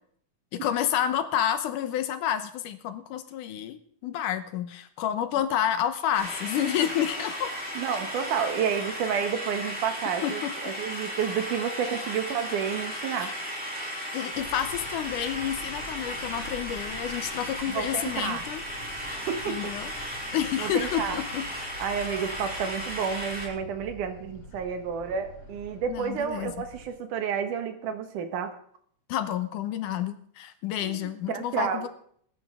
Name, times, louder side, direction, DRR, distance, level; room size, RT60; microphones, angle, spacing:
voice 1, 0.5-7.5 10.2-10.6 13.2-13.4 14.1-18.6 19.5-19.9 20.3-21.5 25.9-26.5 29.1-31.9, left 10 dB, 80° left, 10 dB, 2.5 m, -29 dB
sound 1, 6.1-23.5, equal, 5° right, 2.9 m, -35 dB
voice 2, 7.7-13.3 17.7-18.4 18.8-18.9 19.3-19.7 20.6-21.2 21.8-28.5 30.8-31.9, right 7 dB, 80° right, 7 dB, 2.8 m, -30 dB
sound 2, 14.3-26.9, equal, 35° left, 3.5 m, -46 dB
20.5 x 10.5 x 3.7 m, 0.64 s
omnidirectional pair, 3.6 m